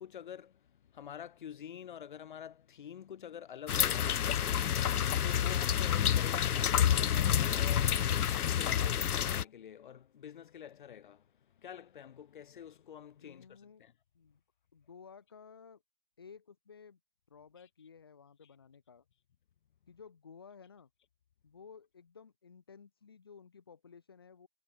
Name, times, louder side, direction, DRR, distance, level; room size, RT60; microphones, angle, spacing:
voice 1, 0.0-8.0 8.5-13.9, left 9 dB, 30° left, 3.0 m, -48 dB
sound 1, 3.7-9.4, left 9 dB, 75° left, 0.5 m, -29 dB
voice 2, 13.2-13.8 14.1-14.4 14.7-15.8 16.2-17.0 17.3-19.0 19.9-20.9 21.4-24.5, left 6 dB, 15° left, 0.8 m, -55 dB
figure-of-eight pair, 150°, 46 cm